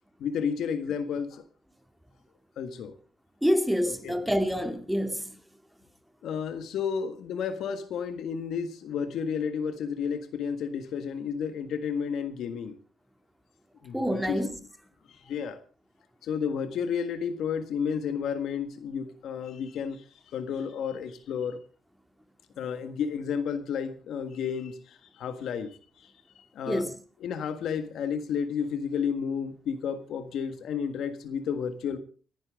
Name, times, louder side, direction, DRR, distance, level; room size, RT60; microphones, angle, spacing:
voice 1, 0.2-1.4 2.6-2.9 4.0-4.1 6.2-12.8 13.8-14.5 15.3-15.6 16.2-20.0 20.3-21.6 22.6-24.8 25.1-25.8 26.5-26.9 27.2-32.0, left 7 dB, 75° left, 1.6 m, -31 dB
voice 2, 3.4-5.3 13.9-14.6 26.7-27.0, equal, 5° right, 2.2 m, -27 dB
29.0 x 10.5 x 3.7 m
cardioid pair, 90°, 0 cm